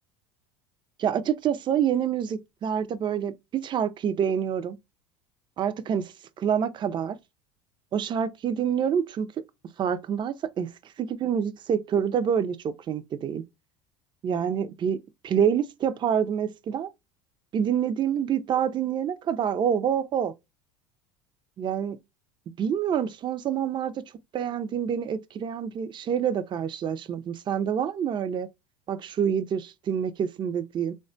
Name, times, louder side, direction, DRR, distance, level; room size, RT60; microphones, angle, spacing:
voice 1, 1.0-4.8 5.6-7.2 7.9-9.3 9.8-10.7 11.0-13.4 14.2-15.0 15.2-16.9 17.5-20.3 21.6-22.0 22.6-24.0 24.3-28.5 28.9-30.9, right 8 dB, 30° right, 0.4 m, -27 dB
3.4 x 2.2 x 2.5 m
hypercardioid pair, 90°, 16 cm